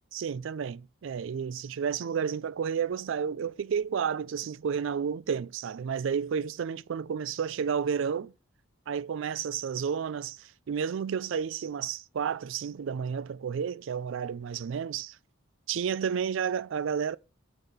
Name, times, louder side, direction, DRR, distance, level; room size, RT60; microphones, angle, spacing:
voice 1, 0.1-8.3 8.9-15.2 15.7-17.2, right 7 dB, 65° right, 0.3 m, -31 dB
7.9 x 3.8 x 6.6 m
head